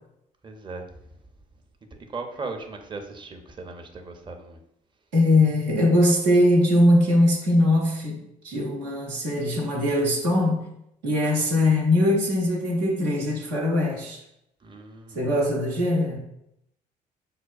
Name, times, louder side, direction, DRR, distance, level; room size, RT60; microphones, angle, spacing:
voice 1, 0.4-0.8 2.1-4.6 14.6-15.2, right 3 dB, 20° right, 4 dB, 0.5 m, -37 dB
voice 2, 5.1-10.6 11.0-14.2 15.1-16.2, left 1 dB, 85° right, -1 dB, 0.7 m, -21 dB
4.9 x 2.2 x 2.3 m, 0.79 s
hypercardioid pair, 50°, 21 cm